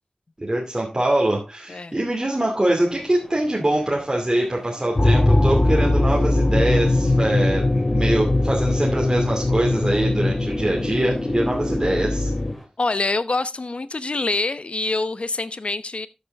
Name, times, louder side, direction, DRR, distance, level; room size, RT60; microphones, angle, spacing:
voice 1, 0.4-12.3, right 1 dB, 30° right, 2.5 m, -23 dB
sound 1, 2.7-12.7, equal, ahead, 3.8 m, -46 dB
sound 2, 4.9-12.5, left 2 dB, 35° left, 1.0 m, -20 dB
voice 2, 12.8-16.1, left 3 dB, 60° left, 0.8 m, -25 dB
13.0 x 6.8 x 3.5 m
wide cardioid pair, 60°, 2 cm